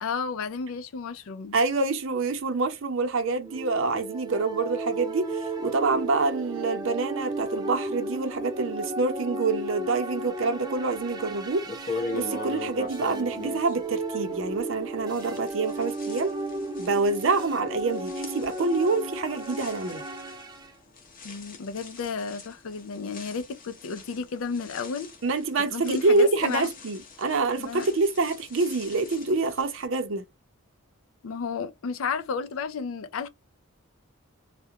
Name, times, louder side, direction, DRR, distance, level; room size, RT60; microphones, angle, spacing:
voice 1, 0.0-1.6 21.2-25.1 25.7-26.7 27.6-27.9 31.2-33.3, left 5 dB, 75° left, 0.4 m, -32 dB
voice 2, 1.5-16.3 16.8-20.0 25.2-30.2, right 3 dB, 65° right, 0.6 m, -26 dB
sound 1, 3.4-20.7, right 2 dB, 20° right, 0.3 m, -34 dB
sound 2, 11.1-11.2 11.6-14.8 15.1-29.8, left 3 dB, 40° left, 0.7 m, -42 dB
2.4 x 2.1 x 2.7 m
head